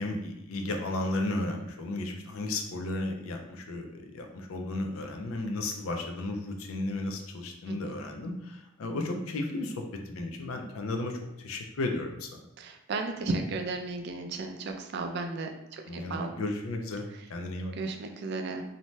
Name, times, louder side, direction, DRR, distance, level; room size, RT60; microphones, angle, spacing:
voice 1, 0.0-12.4 15.8-17.8, left 2 dB, 75° left, 3 dB, 0.4 m, -34 dB
voice 2, 12.6-16.3 17.8-18.6, right 3 dB, 50° right, 4 dB, 0.3 m, -34 dB
2.6 x 2.1 x 3.1 m, 0.83 s
head